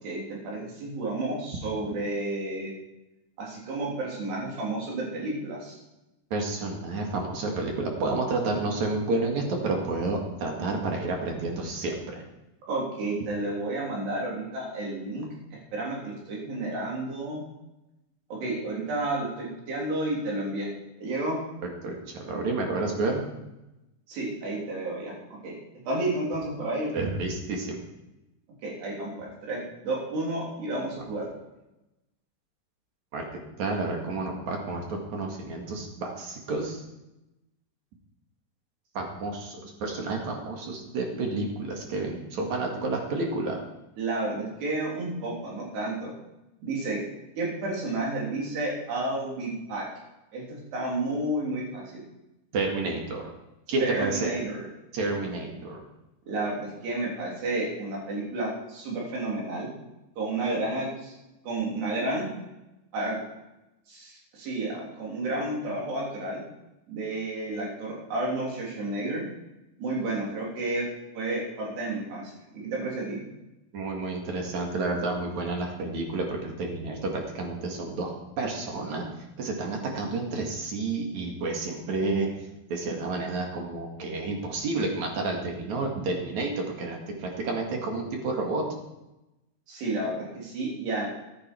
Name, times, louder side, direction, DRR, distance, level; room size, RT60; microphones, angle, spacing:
voice 1, 0.0-2.7 3.4-5.8 12.7-17.4 18.3-20.7 21.0-21.4 24.1-25.1 25.4-25.6 25.9-26.9 28.6-31.3 44.0-46.1 46.6-47.0 47.4-49.9 50.3-52.0 53.8-54.7 56.3-59.7 60.2-61.2 61.4-62.3 62.9-63.2 63.9-66.4 66.9-69.3 69.8-70.9 71.1-73.3 89.7-91.1, right 2 dB, 80° right, -3 dB, 5.7 m, -31 dB
voice 2, 6.3-12.1 21.6-23.2 26.9-27.8 33.1-36.8 38.9-43.6 52.5-53.3 53.7-54.3 54.9-55.8 73.7-79.1 79.4-82.3 82.7-88.6, right 3 dB, 50° right, 1 dB, 3.0 m, -30 dB
14.0 x 11.5 x 4.6 m, 0.95 s
omnidirectional pair, 4.7 m